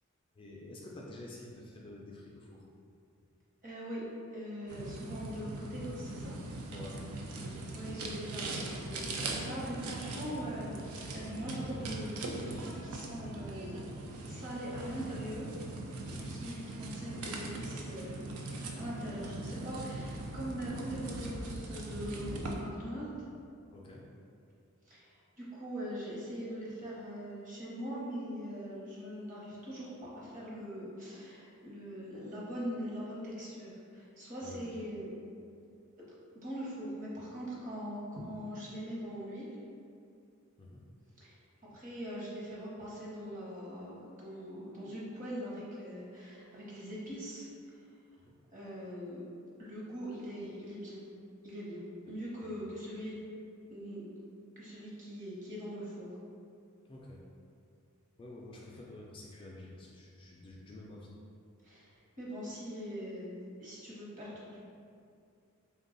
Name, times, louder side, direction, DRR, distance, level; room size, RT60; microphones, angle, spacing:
voice 1, 0.3-2.6 6.7-7.1 16.0-16.3 23.7-24.0 34.4-34.8 40.6-40.8 48.2-48.3 52.6-52.7 56.9-57.2 58.2-61.1, left 2 dB, 25° left, -3 dB, 0.3 m, -49 dB
voice 2, 3.6-4.0 4.3-6.3 7.5-10.8 11.1-13.8 14.1-15.5 16.2-23.2 24.9-29.9 30.1-35.1 36.0-36.1 36.3-39.5 41.2-41.4 41.7-47.5 48.5-49.2 49.6-51.0 51.4-53.2 53.7-54.1 54.6-56.1 61.6-64.6, equal, 40° right, -6 dB, 0.9 m, -42 dB
sound 1, 4.7-22.6, right 2 dB, 80° right, 0.4 m, -41 dB
3.4 x 2.3 x 3.8 m, 2.4 s
head